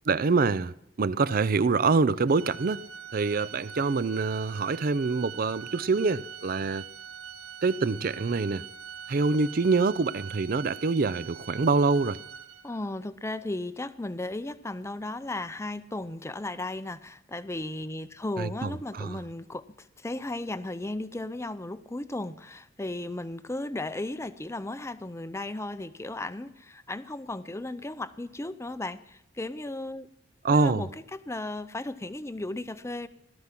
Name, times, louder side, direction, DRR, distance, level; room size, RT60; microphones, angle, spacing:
voice 1, 0.1-2.8 3.1-6.9 7.6-8.7 9.1-12.2 18.4-19.2 30.4-30.9, right 4 dB, 50° right, 0.5 m, -25 dB
Organ, 2.3-12.9, right 8 dB, 80° right, 1.0 m, -43 dB
voice 2, 12.6-30.1 30.5-33.1, left 2 dB, 15° left, 0.5 m, -35 dB
17.0 x 13.0 x 5.9 m
head